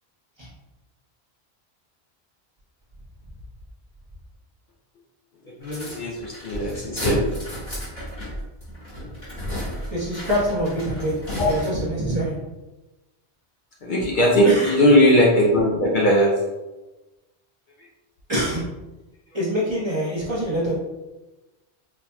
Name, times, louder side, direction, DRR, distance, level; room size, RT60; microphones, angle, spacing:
voice 1, 5.5-7.3 11.4-11.5 13.8-16.4, equal, 55° left, -3 dB, 0.7 m, -19 dB
sound 1, 5.6-12.0, equal, 30° left, 1.4 m, -32 dB
voice 2, 9.9-12.4 14.4-14.7 18.3-18.7 19.3-20.7, equal, 30° right, -7 dB, 0.8 m, -25 dB
4.1 x 2.8 x 2.2 m, 1.1 s
omnidirectional pair, 1.1 m